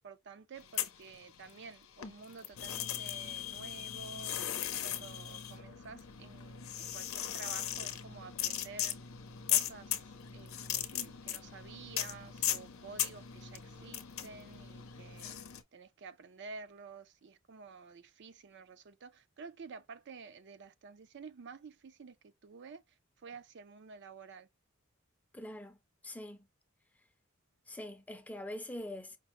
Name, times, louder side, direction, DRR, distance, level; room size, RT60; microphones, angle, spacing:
voice 1, 0.0-4.3 4.6-9.0 9.5-10.0 10.3-15.4 15.7-22.8 23.2-24.5, right 4 dB, 55° right, 0.5 m, -51 dB
sound 1, 0.6-1.7 2.0-15.6, left 11 dB, 85° left, 0.6 m, -38 dB
voice 2, 25.3-25.8 26.0-26.5 27.7-29.2, left 1 dB, 5° left, 0.5 m, -43 dB
5.2 x 2.1 x 3.0 m
head